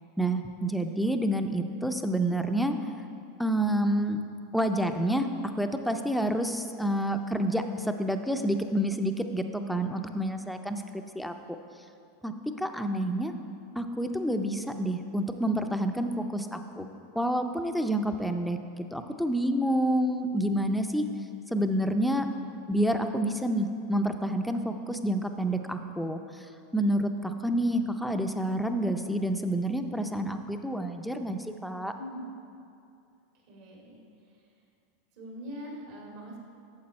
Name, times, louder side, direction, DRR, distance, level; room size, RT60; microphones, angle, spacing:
voice 1, 0.2-2.8 3.4-4.2 4.5-11.3 12.2-13.3 13.8-18.6 18.9-21.1 21.5-22.3 22.7-26.4 26.7-31.9, right 1 dB, ahead, 6 dB, 0.5 m, -28 dB
voice 2, 31.9-32.2 33.5-34.0 35.1-36.4, equal, 65° right, -2 dB, 2.2 m, -42 dB
8.7 x 6.8 x 4.3 m, 2.5 s
hypercardioid pair, 115°, 0 cm